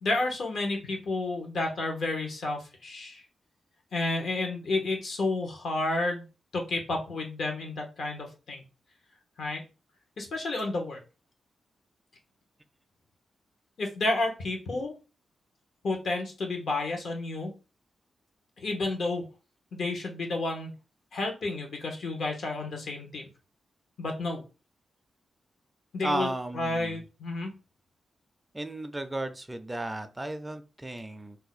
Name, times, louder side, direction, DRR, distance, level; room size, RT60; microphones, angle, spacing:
voice 1, 0.0-3.2 3.9-6.2 6.5-8.6 9.4-9.6 10.2-11.0 13.8-14.9 15.8-17.5 18.6-19.2 19.7-20.7 21.1-23.2 24.0-24.4 25.9-27.5, left 2 dB, 70° left, 3 dB, 1.0 m, -31 dB
voice 2, 26.0-27.0 28.5-31.4, right 1 dB, 15° right, 9 dB, 0.4 m, -34 dB
2.7 x 2.2 x 4.0 m, 0.31 s
cardioid pair, 95°, 0 cm